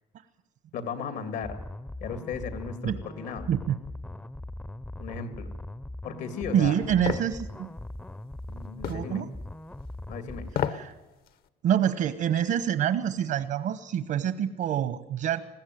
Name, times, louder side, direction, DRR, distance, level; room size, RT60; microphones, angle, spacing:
voice 1, 0.7-1.6 2.0-3.5 5.0-5.5 6.0-6.7 8.5-9.2 10.1-10.5, left 6 dB, 80° left, 9 dB, 2.6 m, -36 dB
sound 1, 1.4-10.5, left 1 dB, 10° left, 0.6 m, -40 dB
voice 2, 6.5-7.7 8.9-9.3 10.7-10.9 11.6-15.4, right 9 dB, 65° right, 12 dB, 1.1 m, -26 dB
sound 2, 7.1-7.3 8.8-9.1 10.5-10.9 11.3-11.4, left 8 dB, 65° left, 1.2 m, -29 dB
21.0 x 15.0 x 9.3 m, 1.1 s
cardioid pair, 110°, 17 cm